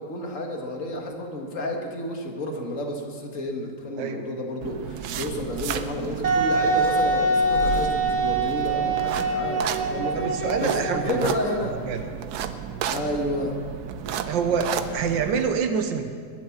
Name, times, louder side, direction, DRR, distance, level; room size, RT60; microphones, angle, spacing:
voice 1, 0.0-11.7 12.9-13.6, left 1 dB, 45° left, 1 dB, 2.1 m, -31 dB
sound 1, 4.6-15.5, right 8 dB, 70° right, 1.1 m, -33 dB
Wind instrument woodwind instrument, 6.2-11.8, right 2 dB, 50° right, 0.5 m, -24 dB
voice 2, 10.1-11.3 11.9-12.0 14.3-16.1, right 6 dB, 85° right, 7 dB, 1.6 m, -26 dB
21.0 x 7.8 x 7.2 m, 2.1 s
omnidirectional pair, 2.0 m